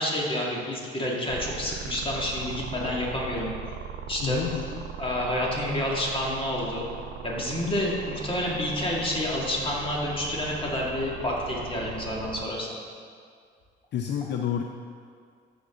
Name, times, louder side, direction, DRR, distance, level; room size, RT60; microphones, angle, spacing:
voice 1, 0.0-3.5 4.1-4.4 5.0-6.8 7.2-12.7, left 1 dB, 25° left, -3 dB, 2.2 m, -29 dB
sound 1, 1.3-12.5, right 7 dB, 70° right, 0.8 m, -39 dB
voice 2, 4.2-4.9 13.9-14.6, left 9 dB, 60° left, 3 dB, 0.5 m, -29 dB
14.0 x 5.3 x 3.8 m, 2.1 s
cardioid pair, 90°, 20 cm